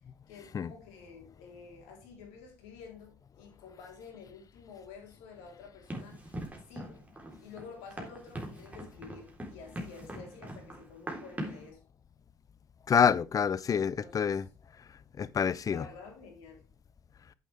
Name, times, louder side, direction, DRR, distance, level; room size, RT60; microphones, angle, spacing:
voice 1, 0.3-7.1 7.4-11.8 14.0-14.4 15.7-16.6, left 5 dB, 75° left, 3.8 m, -50 dB
Run, 5.9-11.7, right 1 dB, 15° right, 3.9 m, -42 dB
voice 2, 12.9-14.4 15.2-15.9, left 7 dB, 35° left, 0.7 m, -27 dB
9.6 x 8.4 x 3.5 m
hypercardioid pair, 60°, 10 cm